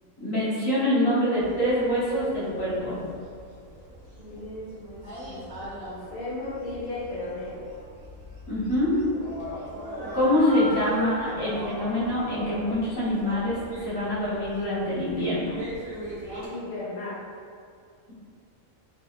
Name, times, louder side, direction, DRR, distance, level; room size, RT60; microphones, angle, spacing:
voice 1, 0.2-3.1 8.5-9.0 10.1-15.6, left 1 dB, 65° left, -10 dB, 1.4 m, -25 dB
sound 1, 1.4-16.5, right 1 dB, 40° right, 1.6 m, -39 dB
voice 2, 4.2-7.6 16.5-17.2, left 2 dB, 40° left, -10 dB, 1.1 m, -36 dB
4.0 x 2.6 x 2.4 m, 2.2 s
omnidirectional pair, 1.5 m